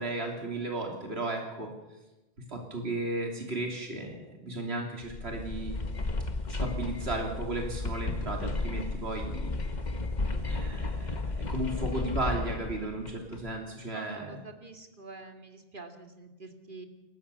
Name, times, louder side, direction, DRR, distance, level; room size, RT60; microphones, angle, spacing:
voice 1, 0.0-1.7 2.5-5.8 6.6-9.5 10.4-14.3, right 2 dB, 70° right, 1 dB, 3.5 m, -35 dB
sound 1, 5.0-13.5, left 2 dB, 40° left, 1.5 m, -33 dB
voice 2, 13.9-16.9, right 3 dB, 50° right, 6 dB, 2.7 m, -46 dB
29.0 x 15.0 x 7.0 m, 1.1 s
omnidirectional pair, 1.1 m